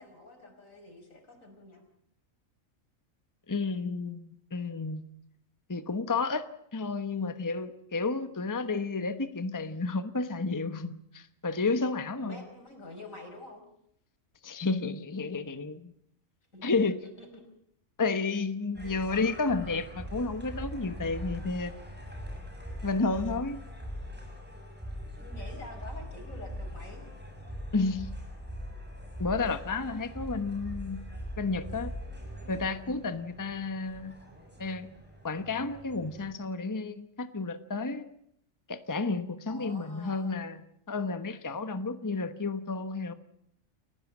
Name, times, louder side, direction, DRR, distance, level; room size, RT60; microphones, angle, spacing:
voice 1, 0.0-1.8 12.2-13.6 16.5-17.3 25.2-27.1 39.5-40.4, left 2 dB, 85° left, 5 dB, 5.6 m, -47 dB
voice 2, 3.5-5.0 5.7-12.4 14.4-15.9 16.6-17.1 18.0-21.8 22.8-23.6 27.7-28.1 29.2-31.0 31.4-31.9 32.5-34.2 34.6-34.9 35.2-38.2 38.7-43.1, left 3 dB, 15° left, 10 dB, 1.0 m, -31 dB
sound 1, 18.7-36.3, equal, 5° right, 6.9 m, -42 dB
30.0 x 16.0 x 7.3 m, 0.73 s
omnidirectional pair, 1.4 m